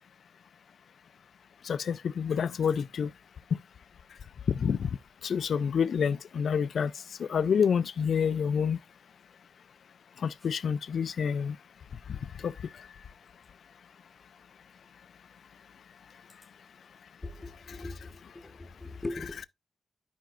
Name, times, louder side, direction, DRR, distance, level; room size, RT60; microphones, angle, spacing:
voice 1, 1.7-3.1 3.5-3.6 4.5-5.0 5.2-6.9 7.2-8.8 10.2-11.6 12.4-12.5, left 7 dB, 65° left, 0.4 m, -28 dB
voice 2, 17.2-19.5, left 2 dB, 15° left, 0.9 m, -40 dB
12.0 x 5.1 x 2.4 m
wide cardioid pair, 170°, 0 cm